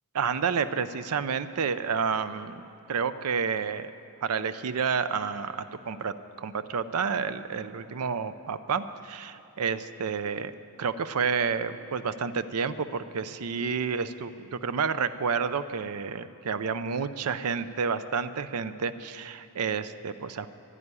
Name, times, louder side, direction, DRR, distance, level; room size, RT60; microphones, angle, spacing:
voice 1, 0.1-3.9 4.2-10.5 10.8-20.5, right 6 dB, 80° right, 13 dB, 0.5 m, -30 dB
11.0 x 10.0 x 9.6 m, 2.8 s
head